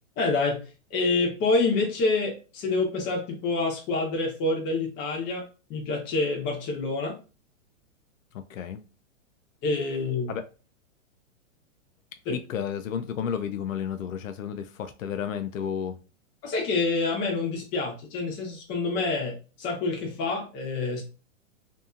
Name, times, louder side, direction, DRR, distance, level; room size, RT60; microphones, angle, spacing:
voice 1, 0.2-5.4 5.7-7.2 9.6-10.3 12.2-12.3 16.4-21.0, left 3 dB, 30° left, 1.0 m, -27 dB
voice 2, 8.3-8.8 10.3-10.4 12.3-16.0, left 8 dB, 90° left, 0.5 m, -32 dB
2.7 x 2.7 x 2.4 m
hypercardioid pair, 140°, 39 cm